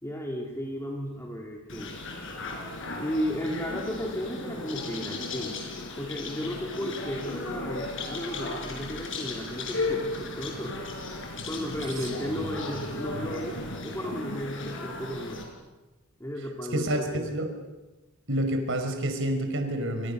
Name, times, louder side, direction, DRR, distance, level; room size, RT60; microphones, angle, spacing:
voice 1, 0.0-2.0 3.0-5.6 6.0-10.8 11.5-13.6 13.8-15.4 16.2-17.3, equal, 15° left, 0 dB, 3.4 m, -34 dB
sound 1, 1.7-15.4, left 2 dB, 65° left, 6.3 m, -35 dB
voice 2, 16.7-17.5 18.3-20.1, right 1 dB, 65° right, 6 dB, 4.9 m, -29 dB
28.5 x 26.5 x 6.7 m, 1.1 s
head